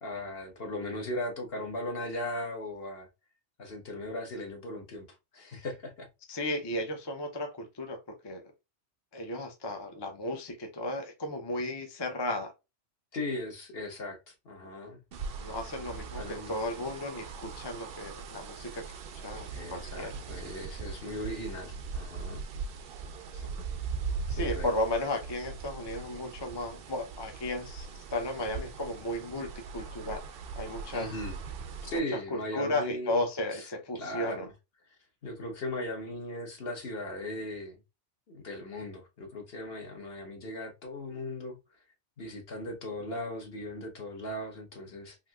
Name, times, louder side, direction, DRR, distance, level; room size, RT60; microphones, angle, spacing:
voice 1, 0.0-3.1 3.6-5.1 5.3-6.1 13.1-15.0 16.2-16.5 19.5-22.4 24.3-24.7 30.9-31.4 31.8-33.2 33.5-33.6 33.9-34.5 35.2-37.8 38.3-41.6 42.2-45.2, left 1 dB, 55° left, 1.3 m, -38 dB
voice 2, 6.3-8.5 9.1-12.5 15.4-20.1 23.3-23.4 24.3-30.2 30.6-31.1 31.9-32.0 32.3-34.5, left 1 dB, 25° left, 0.6 m, -34 dB
sound 1, 15.1-32.0, right 5 dB, 60° right, 0.7 m, -40 dB
3.8 x 2.7 x 2.3 m
omnidirectional pair, 1.2 m